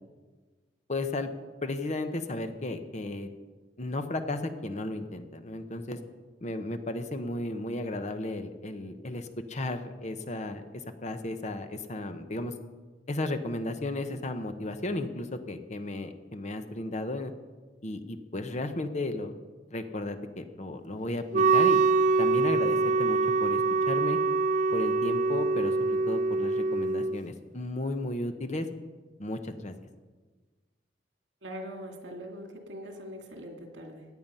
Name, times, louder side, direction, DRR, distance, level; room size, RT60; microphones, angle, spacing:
voice 1, 0.9-1.3 1.6-3.3 3.8-6.0 6.4-12.5 13.1-17.3 17.8-19.3 19.7-21.9 22.2-24.2 24.7-28.7 29.2-29.7, left 2 dB, 40° left, 8 dB, 0.9 m, -34 dB
Wind instrument woodwind instrument, 21.3-27.2, right 4 dB, 45° right, 0.5 m, -25 dB
voice 2, 31.4-34.1, equal, 80° right, 4 dB, 2.2 m, -42 dB
16.5 x 9.3 x 5.5 m, 1.3 s
head